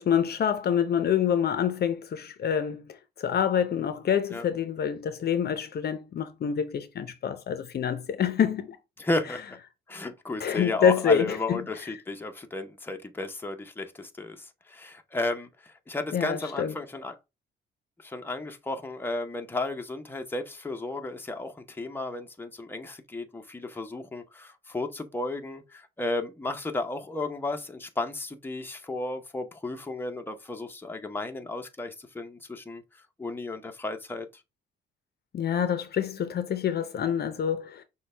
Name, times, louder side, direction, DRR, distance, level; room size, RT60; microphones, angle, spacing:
voice 1, 0.0-8.8 10.4-11.7 16.1-16.7 35.3-37.8, left 8 dB, 55° left, 0.7 m, -26 dB
voice 2, 9.0-9.4 9.9-17.2 18.0-32.8 33.2-34.3, left 2 dB, 10° left, 0.8 m, -33 dB
6.1 x 2.3 x 3.3 m
cardioid pair, 90°, 20 cm